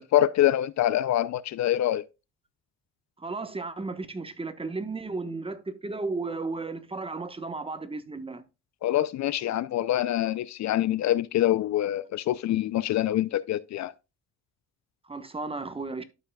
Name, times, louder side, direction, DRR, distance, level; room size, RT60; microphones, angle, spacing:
voice 1, 0.0-2.1 8.8-13.9, left 13 dB, 65° left, 0.5 m, -25 dB
voice 2, 3.2-8.4 15.0-16.0, right 3 dB, 20° right, 1.1 m, -34 dB
12.5 x 5.6 x 2.3 m
cardioid pair, 90°, 30 cm